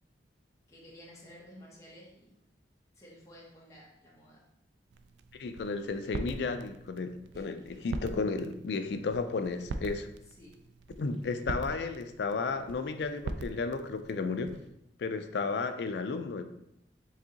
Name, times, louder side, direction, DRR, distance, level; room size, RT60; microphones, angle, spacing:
voice 1, 0.7-2.4 2.9-4.4 7.3-7.5 10.3-10.6, equal, 20° left, -4 dB, 1.1 m, -53 dB
sound 1, 4.9-14.7, right 3 dB, 85° right, 0.3 m, -43 dB
voice 2, 5.3-10.1 11.0-14.6 15.0-16.4, left 4 dB, 70° left, 9 dB, 0.4 m, -33 dB
4.7 x 3.6 x 2.8 m, 0.80 s
head